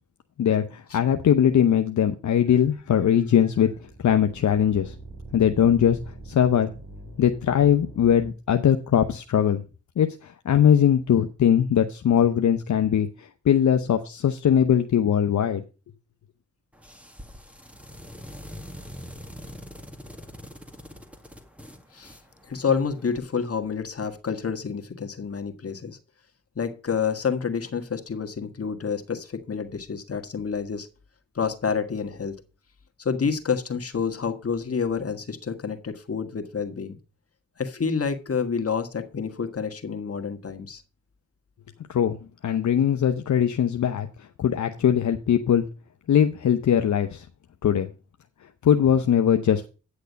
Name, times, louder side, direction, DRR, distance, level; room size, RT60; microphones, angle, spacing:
voice 1, 0.4-3.7 4.0-4.9 5.3-6.0 6.3-6.7 7.2-9.6 10.0-15.6 41.9-42.2 42.4-44.1 44.4-45.6 46.1-47.2 47.6-47.9 48.6-49.7, left 9 dB, 70° left, 6 dB, 0.8 m, -21 dB
sound 1, 3.5-8.3, right 2 dB, 50° right, 4.1 m, -43 dB
sound 2, 16.7-23.2, equal, 5° right, 2.1 m, -44 dB
voice 2, 22.5-26.0 26.5-30.9 31.3-32.4 33.0-37.0 37.6-40.8, left 6 dB, 50° left, 7 dB, 1.6 m, -28 dB
9.5 x 6.6 x 5.1 m, 0.32 s
cardioid pair, 50°, 30 cm